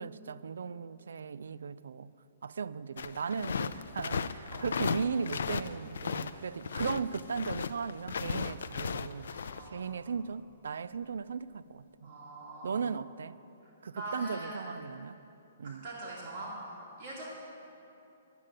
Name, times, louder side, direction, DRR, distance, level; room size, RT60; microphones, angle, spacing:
voice 1, 0.0-2.1 2.4-12.1 12.6-13.4 13.8-15.2 15.6-15.8, right 6 dB, 85° right, 0.3 m, -37 dB
sound 1, 3.0-6.3 6.6-9.6, left 6 dB, 70° left, 0.4 m, -35 dB
voice 2, 9.6-9.9 12.0-12.8 13.6-14.6 15.6-17.2, right 1 dB, 35° right, 2.4 m, -43 dB
9.7 x 7.5 x 8.9 m
hypercardioid pair, 175°, 0 cm